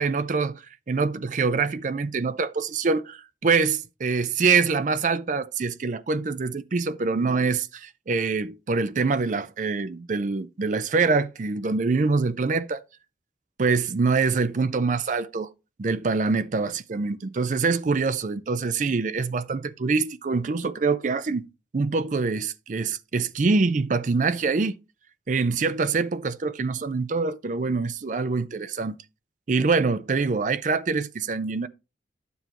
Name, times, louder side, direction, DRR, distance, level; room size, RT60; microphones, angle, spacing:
voice 1, 0.0-12.6 13.6-15.5 15.8-21.5 21.7-24.8 25.3-29.0 29.5-31.7, right 4 dB, 45° right, 0.4 m, -25 dB
11.0 x 7.0 x 3.0 m
head